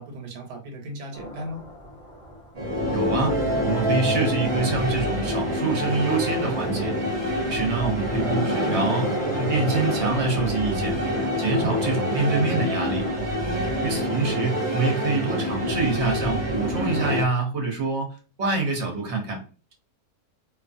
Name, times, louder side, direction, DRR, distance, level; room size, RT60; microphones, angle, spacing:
voice 1, 0.0-1.6 13.4-14.7, right 1 dB, 90° right, 2 dB, 1.3 m, -38 dB
sound 1, 1.1-15.0, right 1 dB, 50° left, 0.3 m, -35 dB
sound 2, 2.6-17.2, equal, 30° right, 0.6 m, -26 dB
voice 2, 2.9-3.4 3.6-7.0 7.3-11.0 11.4-13.1 13.8-18.1 18.4-19.4, right 3 dB, 55° right, 1 dB, 1.0 m, -26 dB
2.7 x 2.4 x 2.5 m, 0.36 s
omnidirectional pair, 1.6 m